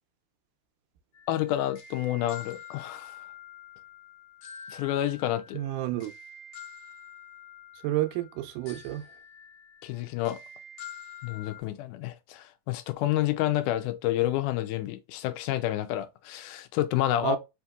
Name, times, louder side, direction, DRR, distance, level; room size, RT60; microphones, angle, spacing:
sound 1, 1.1-11.6, left 6 dB, 70° left, 1.7 m, -47 dB
voice 1, 1.3-3.2 4.7-5.6 9.8-10.4 11.2-17.4, left 13 dB, 85° left, 2.1 m, -29 dB
voice 2, 5.5-6.1 7.8-9.1 17.2-17.4, right 13 dB, 85° right, 2.1 m, -30 dB
5.1 x 2.8 x 2.3 m
omnidirectional pair, 3.6 m